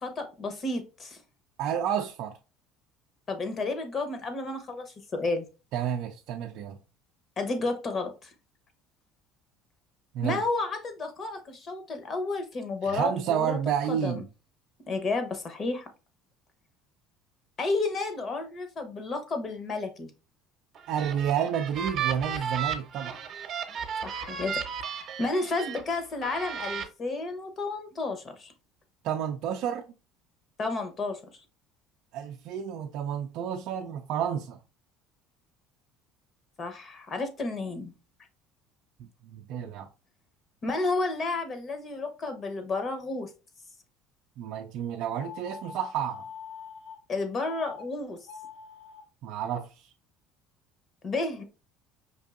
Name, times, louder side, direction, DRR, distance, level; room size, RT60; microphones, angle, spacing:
voice 1, 0.0-1.2 3.3-5.5 7.4-8.3 10.2-14.2 14.9-15.9 17.6-20.1 24.0-28.5 30.6-31.2 36.6-37.9 40.6-43.3 47.1-48.2 51.0-51.4, left 3 dB, 40° left, 0.9 m, -31 dB
voice 2, 1.6-2.4 5.7-6.8 10.1-10.4 12.8-14.2 20.9-23.2 29.0-29.9 32.1-34.6 39.0-39.9 44.4-46.3 49.2-49.9, right 9 dB, 65° right, 0.3 m, -30 dB
sound 1, 20.7-25.8 26.2-26.8, right 8 dB, 50° right, 0.8 m, -34 dB
sound 2, 45.2-47.0 47.4-47.8 48.2-49.0, left 6 dB, 75° left, 0.9 m, -44 dB
5.2 x 2.6 x 2.5 m
supercardioid pair, 100°, 0 cm